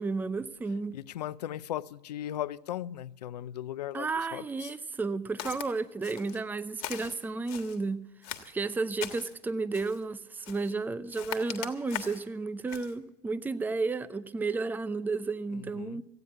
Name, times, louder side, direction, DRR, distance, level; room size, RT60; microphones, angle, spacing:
voice 1, 0.0-0.9 3.9-8.0 8.5-16.0, right 3 dB, 10° right, 16 dB, 0.5 m, -32 dB
voice 2, 0.9-4.8 15.5-16.0, left 12 dB, 85° left, 18 dB, 0.5 m, -37 dB
Walk footsteps, 5.4-5.7 6.0-6.4 6.8-7.8 8.2-9.4 9.7-10.0 10.4-10.8 11.1-12.3 12.7-12.9, left 11 dB, 65° left, 1.5 m, -40 dB
15.0 x 9.4 x 8.4 m, 0.95 s
hypercardioid pair, 100°, 20 cm